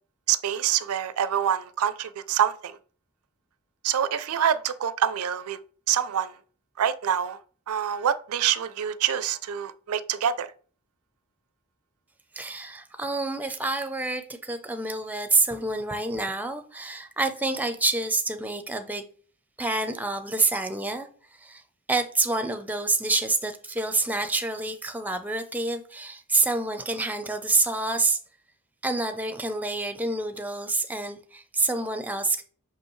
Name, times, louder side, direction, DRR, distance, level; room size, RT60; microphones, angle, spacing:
voice 1, 0.3-2.8 3.8-5.6 5.9-6.3 6.8-7.4 7.7-10.5, right 9 dB, 75° right, 0.4 m, -26 dB
voice 2, 12.3-19.1 19.6-21.1 21.4-21.6 21.9-28.2 28.8-32.4, right 3 dB, 5° right, 0.5 m, -27 dB
6.0 x 5.4 x 3.1 m
head